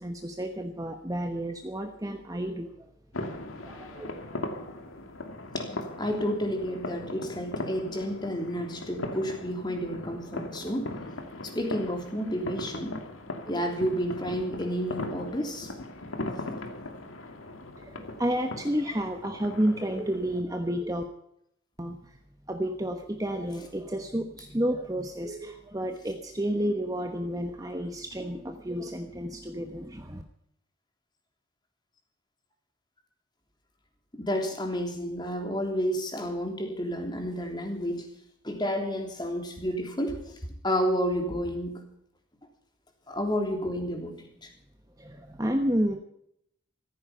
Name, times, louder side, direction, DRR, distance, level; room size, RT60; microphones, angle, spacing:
voice 1, 0.0-2.7 3.6-4.3 4.6-4.7 17.8-21.0 21.8-22.1 22.5-30.2 45.0-46.0, equal, 15° right, 5 dB, 1.1 m, -31 dB
sound 1, 3.1-20.4, left 2 dB, 75° left, 2.4 m, -39 dB
voice 2, 6.0-10.9 11.4-13.0 13.5-15.7 34.1-38.1 38.4-41.8 43.1-44.5, equal, 20° left, 3 dB, 3.2 m, -31 dB
15.5 x 14.5 x 5.6 m, 0.73 s
head